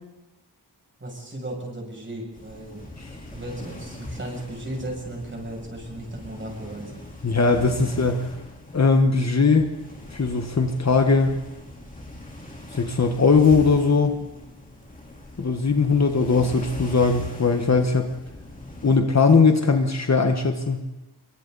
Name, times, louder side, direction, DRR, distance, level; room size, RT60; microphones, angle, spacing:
voice 1, 1.0-2.8 3.1-6.9, right 1 dB, 25° right, -1 dB, 7.4 m, -35 dB
sound 1, 2.3-19.0, left 1 dB, 20° left, 3.8 m, -41 dB
voice 2, 7.2-8.3 8.7-9.7 10.1-11.4 12.7-14.2 15.4-18.1 18.8-20.9, left 4 dB, 40° left, 5 dB, 1.5 m, -19 dB
28.0 x 24.0 x 4.1 m, 1.0 s
wide cardioid pair, 150°, 42 cm